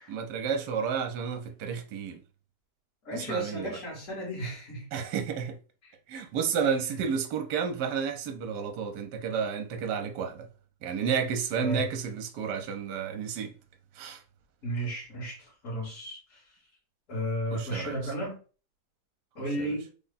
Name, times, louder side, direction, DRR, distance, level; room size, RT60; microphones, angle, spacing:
voice 1, 0.1-2.2 3.1-3.8 4.9-5.6 6.1-10.5 10.8-13.5 14.0-14.2 17.5-18.0 19.6-19.7, right 6 dB, 75° right, 1.2 m, -31 dB
voice 2, 3.0-4.9 5.8-5.9 11.6-11.9 14.6-16.4 17.1-18.4 19.4-19.9, right 1 dB, 50° left, 1.7 m, -33 dB
3.5 x 2.2 x 3.9 m
omnidirectional pair, 1.8 m